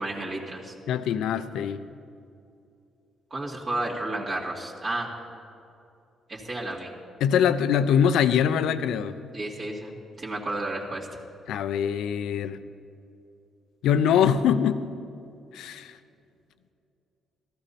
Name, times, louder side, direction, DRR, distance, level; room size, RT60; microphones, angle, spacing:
voice 1, 0.0-0.7 3.3-5.1 6.3-6.9 9.3-11.1, right 2 dB, 45° right, -6 dB, 2.4 m, -32 dB
voice 2, 0.9-1.8 7.2-9.2 11.5-12.6 13.8-14.8 15.5-16.0, left 8 dB, 85° left, 12 dB, 0.6 m, -23 dB
15.5 x 13.5 x 4.3 m, 2.6 s
cardioid pair, 90°, 0 cm